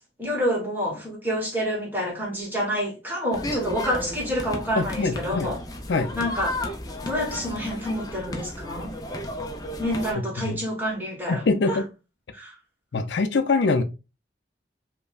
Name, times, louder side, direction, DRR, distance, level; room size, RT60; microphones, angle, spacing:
voice 1, 0.2-5.6 6.1-6.5 7.0-9.0 9.8-11.4 11.7-11.8 12.3-12.5, equal, 10° right, 1.2 m, -28 dB
sound 1, 3.3-10.1, left 1 dB, 20° left, 0.5 m, -33 dB
voice 2, 4.8-5.5 5.9-6.1 10.1-10.6 11.3-11.9 12.9-13.8, left 3 dB, 80° left, 0.4 m, -24 dB
5.2 x 2.2 x 2.3 m
head